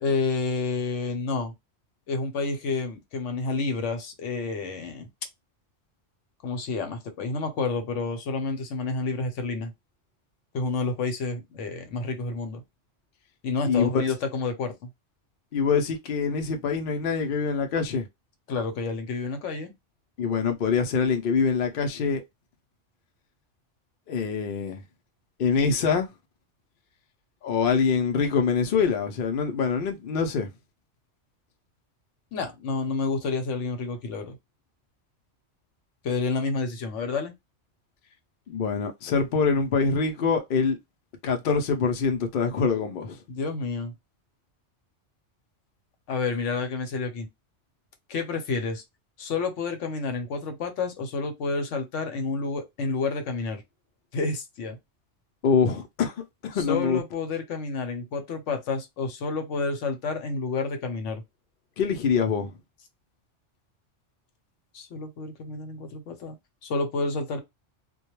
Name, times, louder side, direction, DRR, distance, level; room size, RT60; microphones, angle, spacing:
voice 1, 0.0-1.5 2.1-5.1 6.4-9.7 10.5-12.6 13.4-14.9 18.5-19.7 32.3-34.4 36.0-37.3 43.3-43.9 46.1-47.3 48.1-48.8 49.2-53.6 54.1-54.8 56.5-61.2 64.7-66.4 66.6-67.4, left 4 dB, 75° left, 1.0 m, -29 dB
voice 2, 15.5-18.1 20.2-22.2 24.1-24.8 25.4-26.1 27.4-30.5 38.5-40.8 41.2-43.2 55.4-57.0 61.8-62.5, left 5 dB, 60° left, 0.6 m, -24 dB
2.2 x 2.2 x 2.9 m
omnidirectional pair, 1.3 m